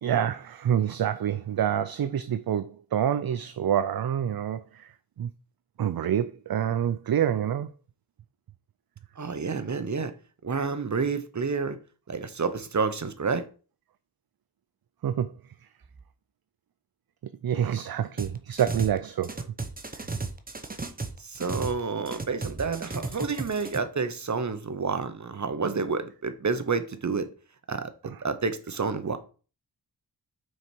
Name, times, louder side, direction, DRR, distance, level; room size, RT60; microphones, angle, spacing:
voice 1, 0.0-4.9 5.2-5.3 5.8-7.7 15.0-15.3 17.4-19.3, right 9 dB, 60° right, 0.5 m, -27 dB
voice 2, 9.2-10.1 10.4-11.8 12.1-13.5 21.2-27.3 27.7-29.2, right 4 dB, 45° right, 1.0 m, -29 dB
sound 1, 18.2-19.0 19.2-21.8 22.1-23.8, right 3 dB, 20° right, 0.8 m, -34 dB
6.3 x 4.7 x 4.4 m
wide cardioid pair, 80°, 41 cm